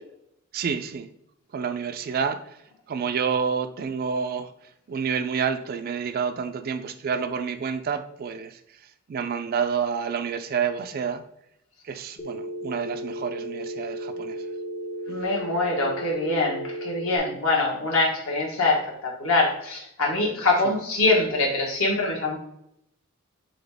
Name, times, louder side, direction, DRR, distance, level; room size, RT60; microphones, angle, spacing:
voice 1, 0.5-1.1 1.5-2.6 2.9-4.5 4.9-8.6 9.1-11.2 11.8-14.5 20.6-20.7, right 6 dB, 45° right, 0.3 m, -28 dB
Telephone, 12.2-17.2, right 1 dB, 30° left, 0.5 m, -34 dB
voice 2, 15.1-22.4, left 2 dB, 65° left, 1.3 m, -24 dB
3.9 x 3.7 x 3.4 m
head